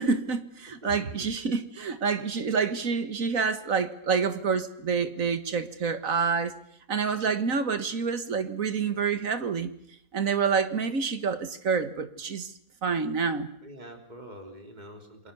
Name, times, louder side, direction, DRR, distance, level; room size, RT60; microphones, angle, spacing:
voice 1, 0.0-6.6 6.9-9.7 10.1-12.5 12.8-13.5, right 5 dB, 60° right, 1.9 m, -27 dB
voice 2, 0.7-1.3 7.1-7.2 13.6-15.3, right 1 dB, 30° right, 3.6 m, -46 dB
28.5 x 22.5 x 7.0 m
omnidirectional pair, 1.6 m